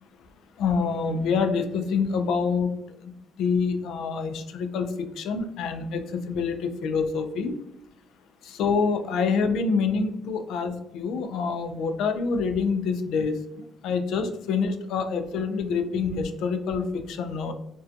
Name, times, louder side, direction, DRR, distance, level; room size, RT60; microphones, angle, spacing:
voice 1, 0.6-2.7 3.0-3.1 3.4-7.5 8.4-13.4 13.8-17.5, left 5 dB, 80° left, 7 dB, 0.3 m, -26 dB
2.4 x 2.2 x 2.5 m, 0.82 s
cardioid pair, 95°, 0 cm